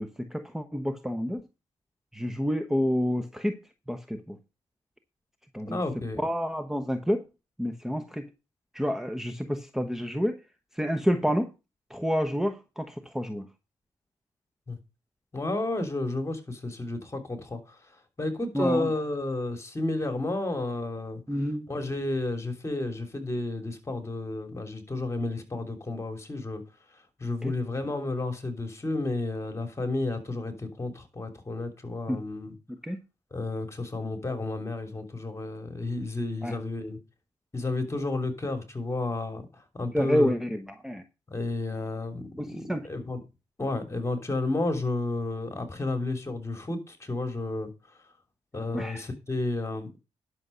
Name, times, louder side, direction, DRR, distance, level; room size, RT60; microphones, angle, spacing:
voice 1, 0.0-1.4 2.1-3.6 3.9-4.4 5.5-5.8 6.2-7.2 7.6-8.3 8.7-10.4 10.7-11.5 11.9-13.5 18.5-18.9 21.3-21.7 27.4-27.5 32.1-32.2 32.7-33.0 36.4-36.6 39.9-41.0 42.4-42.9 48.7-49.1, equal, 5° right, 1.1 m, -29 dB
voice 2, 5.7-6.2 14.7-14.8 15.3-17.8 18.2-21.2 21.7-26.6 27.2-32.5 33.3-37.0 37.5-40.3 41.3-43.2 43.6-47.7 48.5-50.0, left 2 dB, 25° left, 3.0 m, -31 dB
11.0 x 6.4 x 5.5 m
cardioid pair, 80°, 11 cm